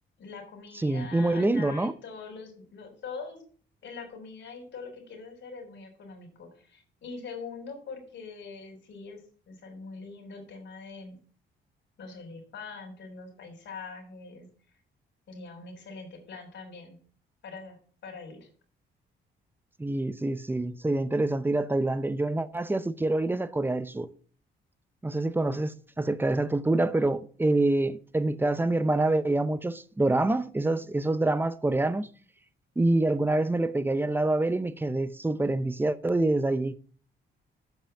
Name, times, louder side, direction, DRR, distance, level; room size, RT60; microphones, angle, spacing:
voice 1, 0.2-3.4 3.8-9.2 9.5-11.1 12.0-14.5 15.3-17.0 17.4-17.8 18.0-18.5, left 4 dB, 65° left, 3.6 m, -43 dB
voice 2, 0.7-1.9 19.8-24.1 25.0-32.1 32.8-36.7, right 2 dB, 10° right, 0.7 m, -26 dB
7.3 x 5.7 x 6.7 m
cardioid pair, 90°, 20 cm